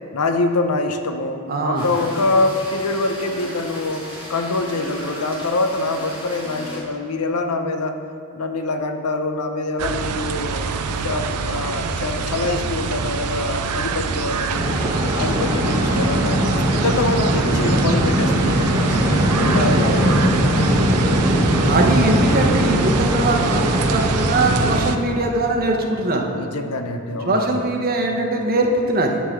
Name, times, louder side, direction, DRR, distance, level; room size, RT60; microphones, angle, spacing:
voice 1, 0.1-4.0 4.3-8.0 8.3-10.7 11.0-14.7 15.1-16.4 16.7-20.5 26.4-27.5, left 2 dB, 75° left, 6 dB, 0.7 m, -25 dB
voice 2, 1.5-1.8 21.7-26.3 27.3-29.2, right 2 dB, 40° right, 2 dB, 0.9 m, -21 dB
sound 1, 1.7-6.8, equal, 25° left, 2.0 m, -36 dB
sound 2, 9.8-25.0, right 5 dB, 85° right, 0.5 m, -25 dB
sound 3, 14.5-24.8, equal, 15° right, 1.2 m, -20 dB
9.8 x 3.8 x 7.3 m, 2.4 s
head